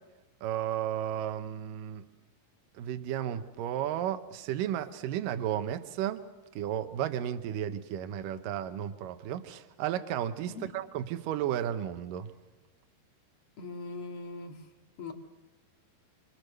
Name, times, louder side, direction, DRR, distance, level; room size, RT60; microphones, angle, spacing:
voice 1, 0.4-2.0 2.7-6.2 6.6-12.3, right 10 dB, 90° right, 9 dB, 1.9 m, -33 dB
voice 2, 13.6-14.6 15.0-15.1, left 4 dB, 50° left, 4 dB, 1.8 m, -40 dB
27.0 x 24.0 x 6.7 m, 1.1 s
omnidirectional pair, 5.3 m